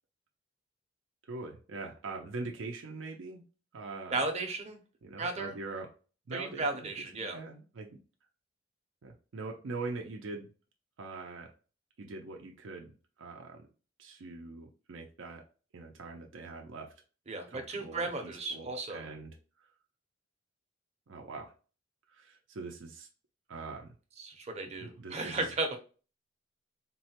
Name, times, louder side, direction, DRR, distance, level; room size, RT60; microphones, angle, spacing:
voice 1, 1.2-3.4 3.7-4.2 5.0-5.9 6.3-7.9 9.0-10.5 11.0-11.5 12.0-13.7 14.0-15.4 15.7-16.9 17.5-19.7 21.1-21.5 22.1-23.1 23.5-23.9 24.8-25.5, right 3 dB, 85° right, 1 dB, 0.5 m, -43 dB
voice 2, 4.1-4.8 5.2-5.5 6.3-7.4 17.3-19.1 24.2-25.8, right 3 dB, 35° right, 4 dB, 0.6 m, -35 dB
3.7 x 2.1 x 2.8 m, 0.36 s
head